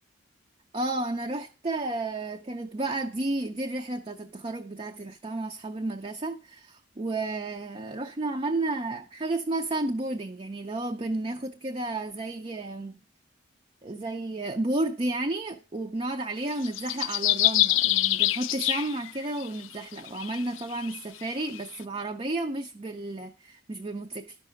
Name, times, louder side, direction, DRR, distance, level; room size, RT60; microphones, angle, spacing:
voice 1, 0.7-13.0 13.8-24.4, right 2 dB, 30° right, 0.5 m, -32 dB
sound 1, 16.5-19.5 20.1-21.6, left 15 dB, 75° left, 0.4 m, -26 dB
11.0 x 5.8 x 6.3 m
head